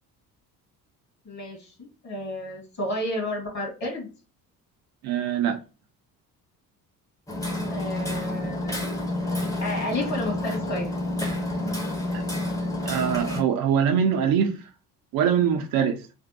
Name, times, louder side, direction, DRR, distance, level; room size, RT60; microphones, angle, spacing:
voice 1, 1.3-4.1 7.7-9.0 9.6-10.9, left 1 dB, 35° left, 1.9 m, -32 dB
voice 2, 5.0-5.6 12.1-12.2 12.8-14.6 15.1-16.1, right 8 dB, 45° right, 0.6 m, -23 dB
Hammer, 7.3-13.4, left 1 dB, 5° left, 0.9 m, -29 dB
3.4 x 2.1 x 4.1 m
figure-of-eight pair, 50°, 48 cm